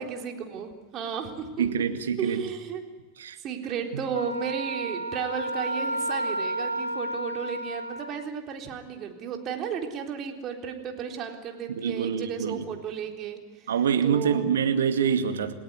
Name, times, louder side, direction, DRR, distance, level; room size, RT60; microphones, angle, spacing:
voice 1, 0.0-1.7 2.2-2.8 3.4-13.7 14.0-14.5, right 7 dB, 30° right, 3 dB, 3.9 m, -34 dB
voice 2, 1.6-2.4 3.2-3.4 3.9-4.0 11.7-12.6 13.7-15.5, right 7 dB, 65° right, 7 dB, 2.4 m, -25 dB
Wind instrument woodwind instrument, 4.1-8.3, right 1 dB, 85° right, 1.0 m, -31 dB
29.5 x 17.5 x 9.7 m, 1.3 s
figure-of-eight pair, 90°, 0 cm